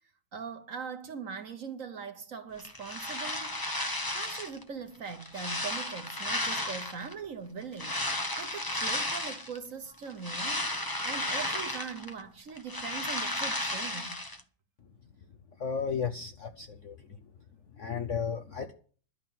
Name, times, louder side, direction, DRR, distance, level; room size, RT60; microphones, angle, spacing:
voice 1, 0.3-3.5 4.1-8.1 8.4-14.2, right 6 dB, 50° right, 1.1 m, -41 dB
sound 1, 2.6-4.6 5.1-7.1 7.7-9.6 10.0-12.2 12.5-14.4, left 1 dB, 25° left, 0.4 m, -33 dB
voice 2, 15.6-17.0 17.8-18.7, left 6 dB, 60° left, 0.8 m, -33 dB
11.5 x 5.8 x 9.2 m
omnidirectional pair, 2.1 m